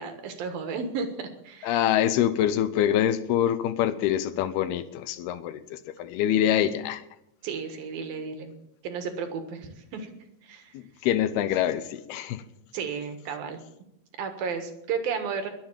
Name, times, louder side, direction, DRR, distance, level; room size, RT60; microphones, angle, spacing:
voice 1, 0.0-1.8 7.4-8.5 8.8-10.1 10.4-10.8 12.7-13.6 14.2-15.5, right 5 dB, 65° right, 6 dB, 3.1 m, -33 dB
voice 2, 1.6-7.0 10.7-12.4, left 11 dB, 80° left, 12 dB, 2.7 m, -25 dB
22.0 x 7.8 x 7.3 m, 0.81 s
omnidirectional pair, 4.7 m